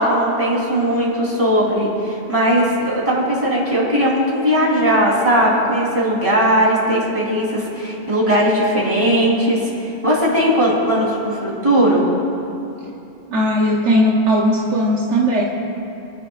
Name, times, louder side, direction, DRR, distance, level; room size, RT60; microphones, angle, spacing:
voice 1, 0.0-12.0, equal, 30° right, -6 dB, 3.9 m, -18 dB
voice 2, 13.3-15.4, equal, 80° right, -3 dB, 1.5 m, -17 dB
29.0 x 11.5 x 2.5 m, 2.9 s
omnidirectional pair, 1.2 m